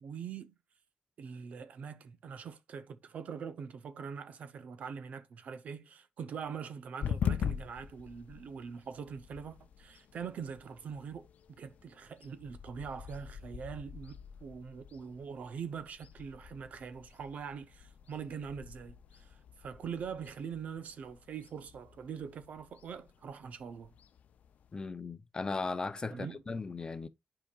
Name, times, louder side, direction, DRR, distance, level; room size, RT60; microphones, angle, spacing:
voice 1, 0.0-0.6 1.2-11.3 11.6-23.9 26.1-26.4, right 6 dB, 70° right, 0.7 m, -43 dB
sound 1, 7.0-24.9, left 8 dB, 75° left, 0.5 m, -43 dB
voice 2, 24.7-27.1, left 3 dB, 30° left, 0.6 m, -37 dB
10.0 x 4.9 x 2.4 m
cardioid pair, 100°, 3 cm